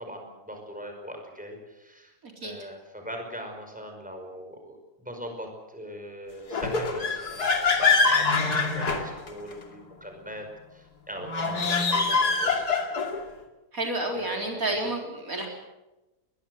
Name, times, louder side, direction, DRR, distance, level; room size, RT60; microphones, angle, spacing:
voice 1, 0.0-2.1 2.4-12.8 14.1-14.9, equal, 5° right, 3 dB, 5.3 m, -41 dB
sound 1, 6.5-9.6 11.2-13.2, left 4 dB, 85° left, 3.1 m, -24 dB
voice 2, 13.7-15.5, right 2 dB, 65° right, 1 dB, 4.4 m, -30 dB
22.0 x 22.0 x 8.0 m, 1.0 s
omnidirectional pair, 1.6 m